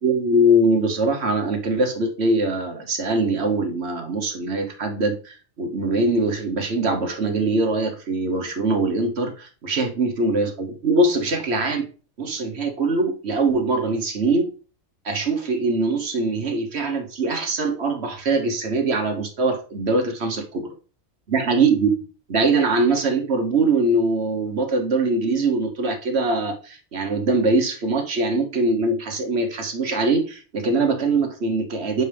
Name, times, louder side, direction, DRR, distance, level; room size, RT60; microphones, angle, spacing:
voice 1, 0.0-11.9 12.2-14.5 15.0-20.7 21.3-21.9 22.3-32.0, right 2 dB, 55° right, 4 dB, 1.3 m, -22 dB
7.0 x 4.6 x 3.3 m, 0.36 s
omnidirectional pair, 1.4 m